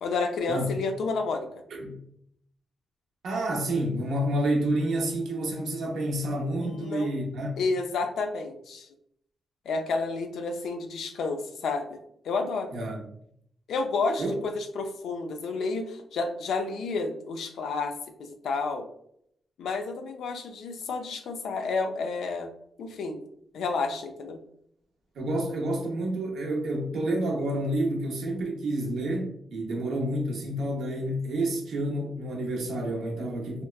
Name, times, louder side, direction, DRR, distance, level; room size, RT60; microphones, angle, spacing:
voice 1, 0.0-1.5 6.6-7.1 7.6-8.9 9.7-12.0 12.2-12.7 13.7-17.9 18.2-18.9 19.6-22.5 22.8-23.2 23.5-24.4, left 4 dB, 85° left, 0.4 m, -30 dB
voice 2, 3.2-7.5 12.7-13.0 14.2-14.3 25.2-33.6, right 1 dB, 80° right, 0.6 m, -29 dB
2.9 x 2.1 x 2.2 m
cardioid pair, 90°, 0 cm